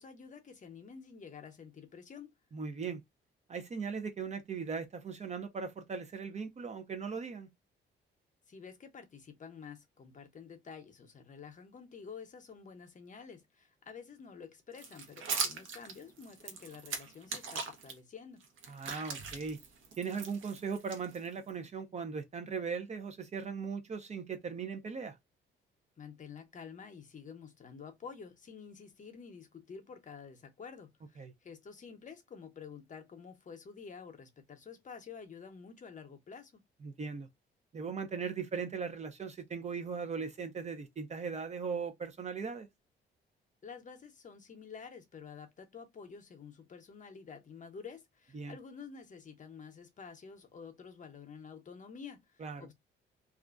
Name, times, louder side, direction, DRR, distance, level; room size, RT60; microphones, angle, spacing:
voice 1, 0.0-2.3 8.5-18.4 26.0-36.6 43.6-52.7, left 6 dB, 40° left, 0.7 m, -49 dB
voice 2, 2.5-3.0 3.5-7.5 18.7-19.6 20.0-25.2 31.2-31.3 36.8-37.3 37.7-42.7 48.3-48.6 52.4-52.6, right 5 dB, 35° right, 0.5 m, -38 dB
sound 1, 14.7-17.9 18.4-21.5, right 5 dB, 75° right, 0.8 m, -40 dB
2.4 x 2.1 x 2.4 m
cardioid pair, 90°, 20 cm